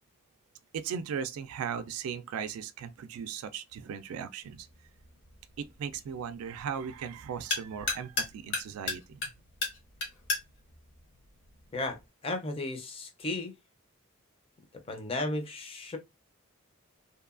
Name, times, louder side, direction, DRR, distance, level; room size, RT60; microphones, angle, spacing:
voice 1, 0.7-4.7 5.6-9.3, right 7 dB, 85° right, 0.3 m, -37 dB
sound 1, 4.4-12.0, left 3 dB, 55° left, 0.9 m, -38 dB
voice 2, 11.7-13.5 14.9-16.0, left 2 dB, 25° left, 0.5 m, -34 dB
2.7 x 2.3 x 2.4 m
head